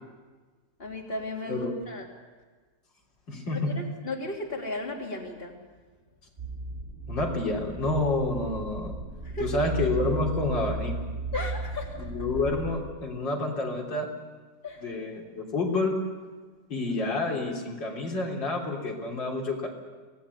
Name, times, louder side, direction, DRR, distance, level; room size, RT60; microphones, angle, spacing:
voice 1, 0.8-2.1 3.5-5.5 9.2-9.5 11.3-12.1 14.6-14.8, left 2 dB, 30° left, -1 dB, 3.5 m, -35 dB
voice 2, 3.3-3.9 7.1-8.9 9.4-10.9 12.0-14.1 14.8-15.9 16.7-19.7, left 2 dB, 90° left, -1 dB, 4.2 m, -29 dB
sound 1, 6.4-12.8, right 2 dB, 30° right, 5.2 m, -35 dB
25.0 x 18.5 x 8.3 m, 1.4 s
omnidirectional pair, 1.9 m